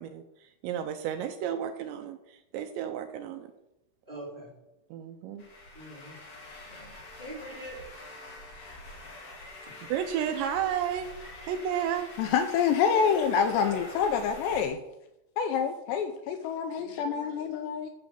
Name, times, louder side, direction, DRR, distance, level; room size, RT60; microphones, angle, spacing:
voice 1, 0.0-3.5 4.9-5.4 9.6-11.1 11.4-12.1, right 9 dB, 85° right, 8 dB, 2.7 m, -32 dB
voice 2, 4.0-4.5 5.7-6.2 6.6-7.8 12.9-14.0 16.7-17.6, right 1 dB, 25° right, -4 dB, 1.2 m, -44 dB
sound 1, 5.4-14.6, left 2 dB, 45° left, 2.2 m, -46 dB
voice 3, 12.2-14.8 15.4-17.9, left 7 dB, 80° left, 7 dB, 2.6 m, -27 dB
9.9 x 6.2 x 7.1 m, 0.90 s
omnidirectional pair, 5.5 m